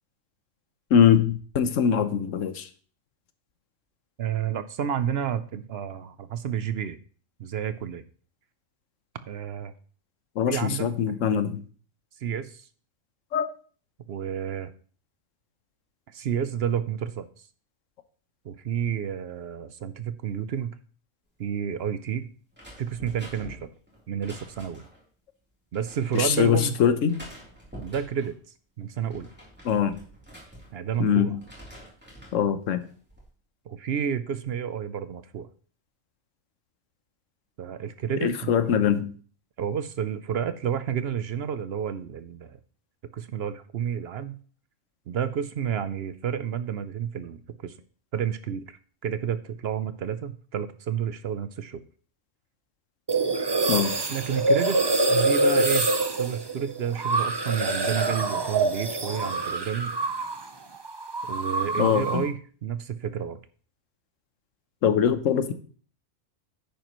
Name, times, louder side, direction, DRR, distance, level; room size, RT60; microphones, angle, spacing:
voice 1, 0.9-2.7 10.4-11.6 13.3-13.5 26.1-27.2 29.6-30.0 31.0-31.4 32.3-32.8 38.2-39.1 53.7-53.9 61.8-62.2 64.8-65.5, left 8 dB, 80° left, 11 dB, 1.2 m, -22 dB
voice 2, 4.2-7.0 7.4-8.0 9.3-9.7 10.5-10.9 12.2-12.7 14.1-14.7 16.1-17.3 18.4-20.8 21.4-22.3 22.8-23.7 24.1-24.8 25.7-26.8 27.8-28.3 28.8-29.3 30.7-31.3 33.7-35.5 37.6-38.5 39.6-42.6 43.1-44.4 45.1-47.7 48.1-48.8 49.0-51.8 54.1-55.9 56.2-59.9 61.3-63.4, right 8 dB, 60° right, 13 dB, 0.8 m, -30 dB
sound 1, 22.5-25.0 25.7-26.7 27.1-28.3 28.8-31.0 31.3-32.4 32.9-33.3, right 1 dB, 10° right, 3.4 m, -46 dB
sound 2, 53.1-60.5 60.7-62.3, right 2 dB, 25° right, 0.6 m, -25 dB
10.5 x 9.0 x 3.0 m, 0.42 s
omnidirectional pair, 1.3 m